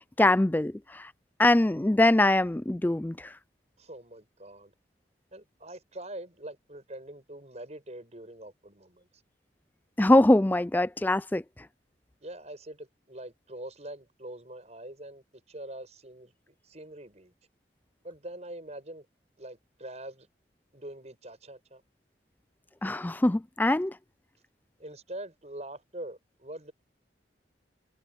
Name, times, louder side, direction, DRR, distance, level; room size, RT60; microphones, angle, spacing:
voice 1, 0.2-1.1 1.4-3.3 10.0-11.4 22.8-23.9, left 1 dB, 10° left, 0.4 m, -23 dB
voice 2, 3.8-4.7 5.3-9.1 12.2-17.3 18.0-19.1 19.4-20.3 20.7-21.8 24.8-26.7, right 1 dB, 40° right, 7.3 m, -44 dB
head